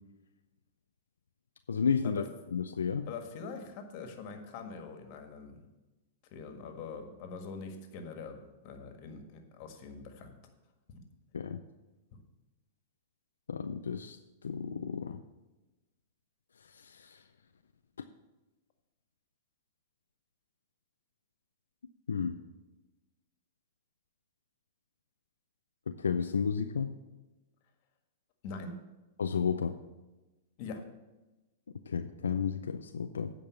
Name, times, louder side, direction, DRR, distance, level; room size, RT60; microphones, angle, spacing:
voice 1, 1.7-2.2 2.5-3.1 11.3-11.6 13.5-14.2 14.4-15.2 16.7-17.2 22.1-22.4 25.9-27.0 29.2-29.8 31.9-33.3, left 6 dB, 90° left, 7 dB, 0.4 m, -32 dB
voice 2, 3.1-5.7 6.3-10.4 28.4-28.8 30.6-30.8, left 4 dB, 50° left, 5 dB, 1.6 m, -43 dB
9.0 x 5.3 x 7.1 m, 1.1 s
hypercardioid pair, 115°, 0 cm